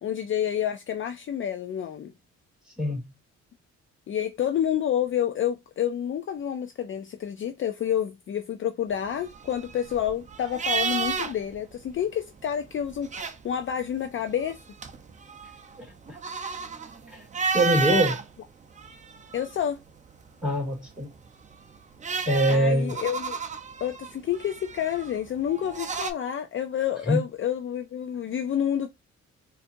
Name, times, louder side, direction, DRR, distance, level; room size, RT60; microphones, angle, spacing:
voice 1, 0.0-2.1 4.1-14.6 19.3-19.8 22.5-23.4 23.8-28.9, left 10 dB, 45° left, 0.4 m, -29 dB
voice 2, 2.8-3.1 15.8-16.2 17.1-17.2 17.5-18.2 20.4-21.1 22.3-22.9 27.1-27.2, right 1 dB, 5° right, 2.4 m, -24 dB
sound 1, 9.1-11.6 11.9-12.0 12.8-13.7 14.3-18.2 18.8-19.8 21.3-26.1, right 5 dB, 25° right, 0.5 m, -31 dB
4.3 x 2.6 x 2.6 m
cardioid pair, 90°, 30 cm